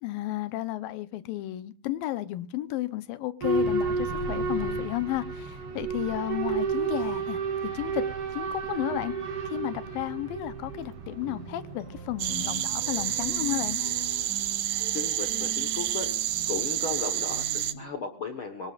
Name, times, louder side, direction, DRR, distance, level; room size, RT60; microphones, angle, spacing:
voice 1, 0.0-8.1 8.3-9.1 9.5-13.8, left 15 dB, 80° left, 2.6 m, -33 dB
Boat Water vehicle / Alarm, 3.4-14.1, right 4 dB, 45° right, 3.1 m, -32 dB
sound 1, 11.1-17.9, left 1 dB, 25° right, 7.3 m, -43 dB
sound 2, 12.2-17.7, right 13 dB, 90° right, 2.8 m, -29 dB
voice 2, 14.9-16.1 16.5-18.7, left 5 dB, 55° left, 1.6 m, -35 dB
24.5 x 18.5 x 2.5 m
omnidirectional pair, 4.1 m